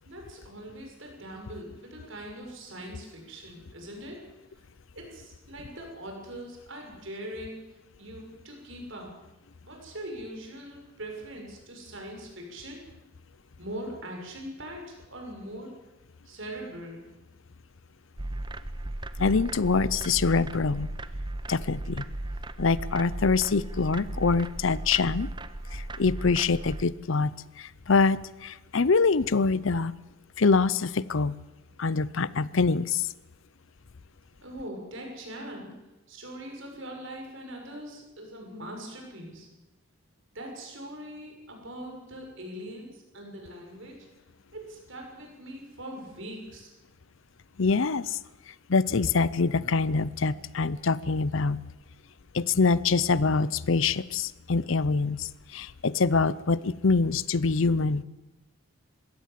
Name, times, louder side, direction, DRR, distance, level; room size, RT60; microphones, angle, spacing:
voice 1, 0.0-4.2 4.9-7.6 8.0-9.1 9.6-12.8 13.6-15.7 16.2-17.0 34.4-35.7 36.1-39.5 40.3-43.9 44.5-46.7, right 1 dB, 60° right, 2 dB, 6.5 m, -41 dB
sound 1, 18.2-26.8, right 1 dB, 20° right, 0.7 m, -36 dB
voice 2, 19.2-20.9 21.5-22.0 22.6-25.3 25.7-29.9 30.4-31.4 31.8-33.1 47.6-48.2 48.7-51.6 52.3-58.0, left 4 dB, 65° left, 19 dB, 0.6 m, -25 dB
22.0 x 17.0 x 7.6 m, 1.0 s
head